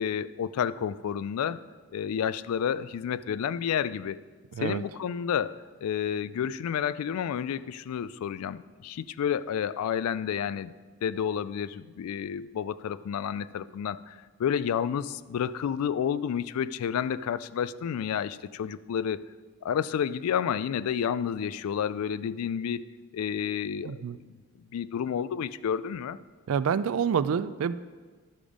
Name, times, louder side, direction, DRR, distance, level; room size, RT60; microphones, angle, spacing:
voice 1, 0.0-1.6 1.9-4.2 4.6-10.7 11.0-19.2 19.6-22.9 23.1-24.4 24.7-26.2, left 8 dB, 80° left, 17 dB, 0.3 m, -30 dB
voice 2, 4.5-4.8 23.8-24.2 26.5-27.7, right 7 dB, 70° right, 15 dB, 0.3 m, -27 dB
11.5 x 5.1 x 5.0 m, 1.4 s
head